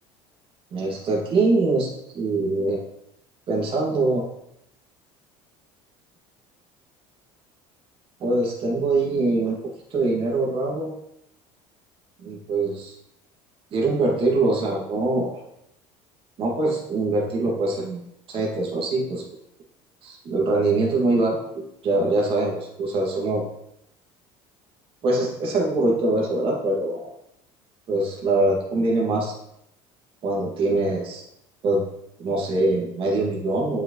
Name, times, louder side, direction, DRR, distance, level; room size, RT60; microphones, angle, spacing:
voice 1, 0.7-1.9 2.1-2.8 3.5-4.2 8.2-9.6 9.9-10.9 12.2-12.9 13.7-15.3 16.4-18.0 18.3-19.2 20.0-23.4 25.0-27.1 27.9-29.3 30.2-31.2 31.6-31.8 32.2-33.8, right 2 dB, 45° right, -2 dB, 2.0 m, -23 dB
7.4 x 6.3 x 3.1 m, 0.77 s
supercardioid pair, 115°, 13 cm